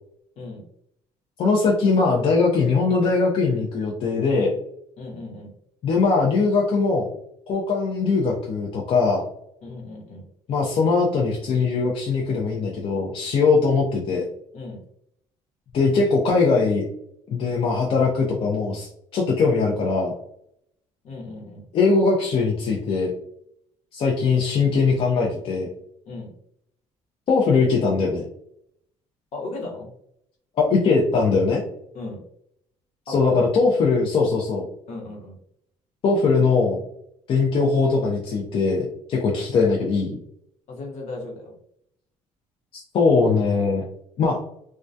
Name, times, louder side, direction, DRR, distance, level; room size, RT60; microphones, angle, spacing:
voice 1, 1.4-4.6 5.8-7.1 7.5-9.2 10.5-14.2 15.7-16.8 17.3-20.1 21.7-23.1 23.9-25.7 27.3-28.2 30.6-31.6 33.1-34.7 36.0-36.8 37.3-40.1 42.9-43.8 44.2-44.4, left 4 dB, 45° left, -2 dB, 0.4 m, -21 dB
voice 2, 5.0-5.5 9.6-10.2 14.5-14.8 21.0-21.6 26.1-26.3 29.3-29.9 31.9-32.2 33.1-33.5 34.9-35.4 40.7-41.5, left 2 dB, 65° left, -1 dB, 0.9 m, -35 dB
2.2 x 2.2 x 2.5 m, 0.71 s
cardioid pair, 135°, 13 cm